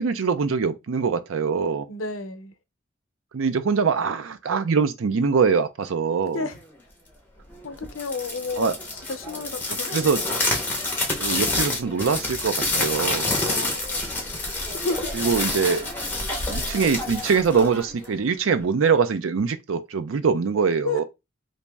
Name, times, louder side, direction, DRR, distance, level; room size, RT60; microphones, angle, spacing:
voice 1, 0.0-1.9 3.3-6.5 8.6-8.8 9.9-10.2 11.2-13.3 15.1-15.9 16.5-21.0, right 5 dB, 90° right, 0.5 m, -23 dB
voice 2, 1.9-2.5 6.3-6.6 7.6-8.8 9.1-10.4 13.4-14.0 14.7-15.1 20.8-21.0, left 3 dB, 90° left, 0.7 m, -31 dB
sound 1, 7.8-18.2, left 2 dB, 10° left, 0.8 m, -28 dB
3.0 x 2.7 x 3.4 m
head